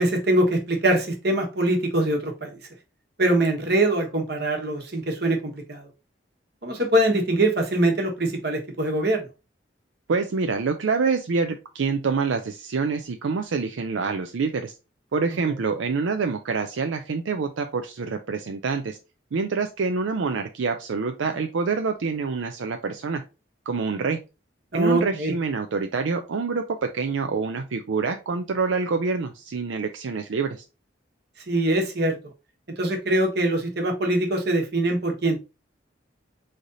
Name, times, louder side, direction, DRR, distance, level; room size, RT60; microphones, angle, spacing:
voice 1, 0.0-2.6 3.2-5.4 5.7-5.9 6.6-9.3 24.7-25.3 31.5-32.1 32.8-35.4, right 1 dB, 55° right, 3 dB, 1.2 m, -23 dB
voice 2, 10.1-14.7 15.1-19.0 19.3-23.2 23.7-24.2 24.7-26.6 26.9-30.6, right 4 dB, 80° right, 6 dB, 0.5 m, -26 dB
4.0 x 3.3 x 3.8 m, 0.29 s
head